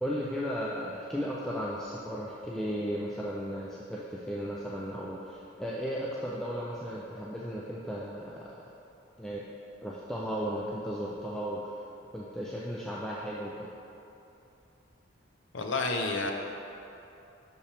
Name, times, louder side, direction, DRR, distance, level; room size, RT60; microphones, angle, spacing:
voice 1, 0.0-8.6 9.2-9.4 9.8-11.8 12.1-13.7, equal, 5° left, -6 dB, 0.3 m, -35 dB
voice 2, 15.5-16.3, left 3 dB, 65° left, 3 dB, 0.6 m, -29 dB
6.2 x 5.5 x 3.4 m, 2.8 s
head